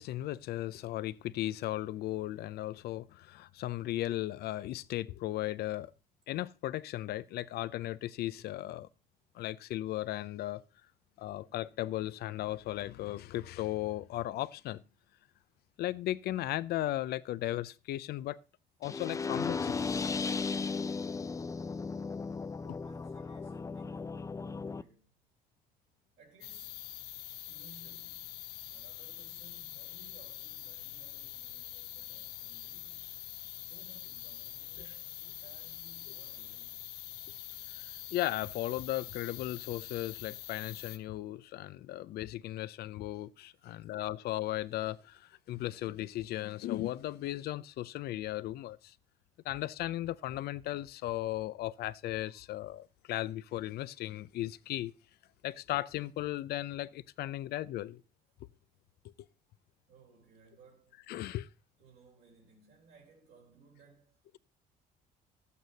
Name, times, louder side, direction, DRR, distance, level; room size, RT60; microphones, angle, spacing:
voice 1, 0.0-5.9 6.3-8.9 9.3-10.6 11.2-14.8 15.8-18.4 18.8-19.7 37.8-48.9 49.4-54.9 55.4-58.0 61.1-61.5, left 15 dB, 70° left, 0.6 m, -36 dB
sound 1, 18.8-24.8, left 4 dB, 20° left, 0.5 m, -36 dB
voice 2, 22.6-25.2 26.2-26.9 27.5-33.1 33.6-37.0 43.6-43.7 59.9-61.0 61.8-64.4, right 4 dB, 75° right, 3.7 m, -61 dB
sound 2, 26.4-41.0, left 13 dB, 85° left, 1.1 m, -45 dB
12.0 x 8.4 x 4.0 m
cardioid pair, 110°, 17 cm